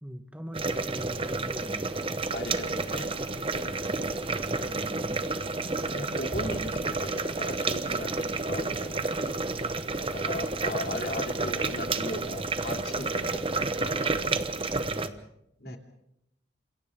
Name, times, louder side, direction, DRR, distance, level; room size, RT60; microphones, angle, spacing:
voice 1, 0.0-2.0 4.2-5.4 13.9-14.0 14.6-15.3 15.6-15.8, equal, 5° right, 7 dB, 1.1 m, -42 dB
sound 1, 0.5-15.1, right 3 dB, 30° right, 1.0 m, -30 dB
voice 2, 2.3-3.7 5.8-9.6 10.0-13.4 13.8-14.1 15.6-15.8, left 1 dB, 60° left, 3 dB, 3.1 m, -38 dB
29.5 x 27.5 x 3.7 m, 0.77 s
head